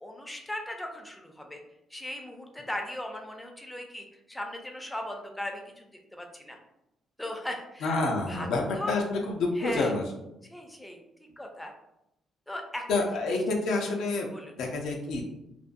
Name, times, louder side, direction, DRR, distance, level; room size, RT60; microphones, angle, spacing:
voice 1, 0.0-1.6 1.9-5.9 6.2-6.6 7.2-8.0 8.3-8.5 8.7-9.0 9.6-9.9 10.5-11.0 11.4-11.7 12.5-12.8 14.3-14.5, left 1 dB, 10° left, 2 dB, 0.4 m, -38 dB
voice 2, 7.8-10.1 12.9-14.3 14.6-15.2, left 3 dB, 80° left, 1 dB, 0.5 m, -28 dB
2.5 x 2.2 x 2.5 m, 0.87 s
cardioid pair, 90°, 0 cm